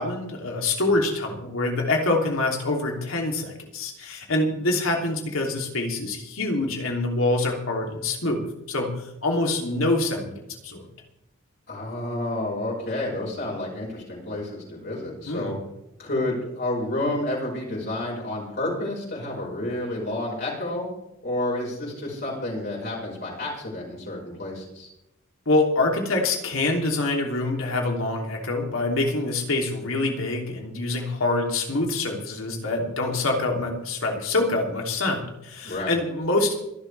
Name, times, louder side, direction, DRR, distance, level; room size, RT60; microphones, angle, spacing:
voice 1, 0.0-8.9 9.2-10.9 15.2-15.6 25.5-36.5, left 2 dB, 85° left, 1 dB, 3.0 m, -25 dB
voice 2, 11.7-15.5 16.0-20.9 21.2-24.9 35.6-35.9, left 1 dB, 50° left, -4 dB, 5.3 m, -30 dB
25.5 x 11.5 x 3.4 m, 0.84 s
head